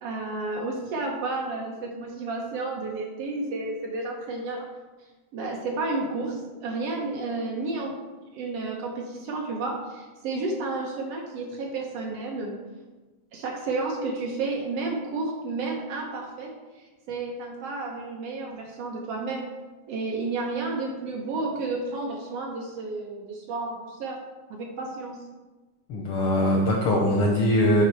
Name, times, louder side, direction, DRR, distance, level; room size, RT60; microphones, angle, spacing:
voice 1, 0.0-4.7 5.3-7.9 8.3-12.6 13.3-19.4 19.9-24.2 24.5-25.2, right 3 dB, 70° right, 0 dB, 1.5 m, -31 dB
voice 2, 25.9-27.8, left 1 dB, 80° left, 0 dB, 1.2 m, -22 dB
9.3 x 3.8 x 4.3 m, 1.2 s
omnidirectional pair, 3.3 m